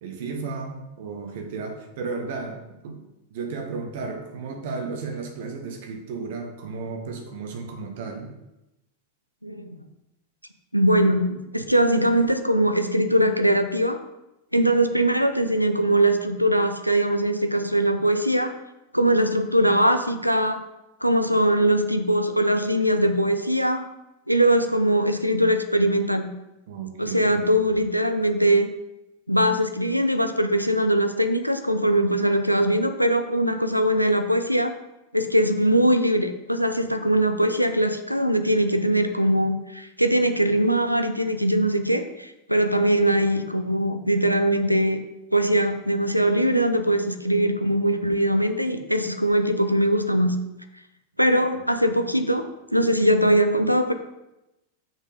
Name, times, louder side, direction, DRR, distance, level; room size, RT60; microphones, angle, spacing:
voice 1, 0.0-3.0 3.3-8.3 26.7-27.4, right 4 dB, 55° right, 4 dB, 1.6 m, -34 dB
voice 2, 9.4-9.8 10.7-14.0 14.5-18.5 18.9-20.6 21.0-23.8 24.3-26.3 27.0-28.7 29.3-34.7 35.1-45.0 45.3-50.4 51.2-53.9, right 1 dB, 90° right, 8 dB, 0.6 m, -21 dB
6.5 x 6.2 x 5.1 m, 0.94 s
figure-of-eight pair, 90°, 0 cm